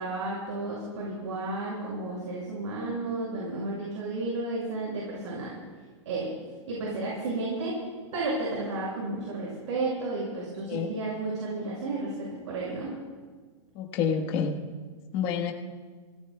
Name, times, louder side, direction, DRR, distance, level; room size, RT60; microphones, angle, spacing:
voice 1, 0.0-5.5 6.0-6.3 6.7-7.8 8.1-12.9, right 2 dB, 70° right, -5 dB, 6.0 m, -32 dB
voice 2, 13.7-14.6 15.1-15.5, left 7 dB, 30° left, 2 dB, 1.3 m, -28 dB
28.0 x 17.0 x 2.3 m, 1.5 s
hypercardioid pair, 165°, 16 cm